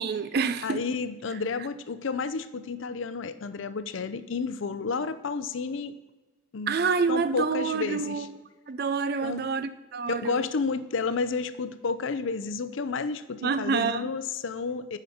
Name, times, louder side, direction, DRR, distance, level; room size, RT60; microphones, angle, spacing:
voice 1, 0.0-0.8 6.7-8.3 8.7-10.5 13.4-14.1, right 5 dB, 50° right, 0.4 m, -27 dB
voice 2, 0.6-5.9 6.5-6.8 7.1-8.3 9.2-9.7 10.1-15.0, left 4 dB, 80° left, 0.5 m, -31 dB
9.4 x 5.1 x 5.7 m
head